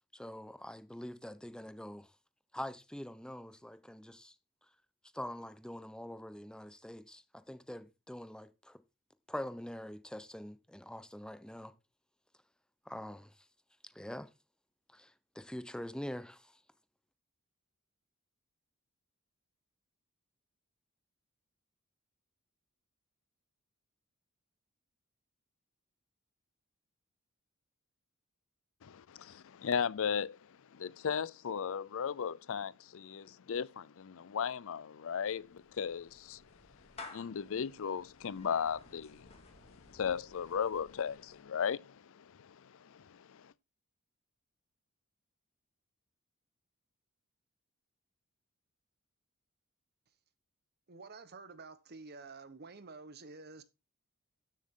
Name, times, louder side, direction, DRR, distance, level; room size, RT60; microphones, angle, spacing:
voice 1, 0.1-2.1 2.5-4.3 5.1-8.8 9.3-11.7 12.9-13.3 13.9-14.3 14.9-16.6, left 1 dB, 5° left, 0.8 m, -44 dB
voice 2, 28.8-36.4 37.1-43.5, left 7 dB, 65° left, 0.5 m, -37 dB
Clapping / Meow, 35.1-41.5, left 3 dB, 30° left, 2.4 m, -55 dB
voice 3, 50.9-53.6, right 3 dB, 50° right, 1.1 m, -50 dB
12.5 x 7.6 x 3.7 m
head